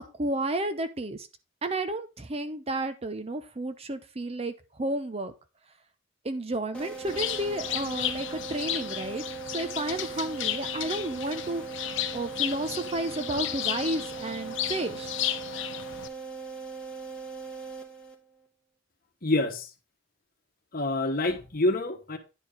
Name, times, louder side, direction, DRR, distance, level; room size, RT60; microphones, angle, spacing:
voice 1, 0.2-1.3 1.6-4.5 4.8-5.3 6.2-9.2 9.5-15.2, right 2 dB, 30° right, 0.7 m, -32 dB
sound 1, 6.7-18.5, right 5 dB, 5° left, 1.6 m, -40 dB
Bird, 7.1-16.1, left 11 dB, 65° left, 0.9 m, -34 dB
voice 2, 19.2-19.7 20.7-22.2, left 2 dB, 45° left, 1.3 m, -27 dB
9.9 x 4.6 x 5.3 m
head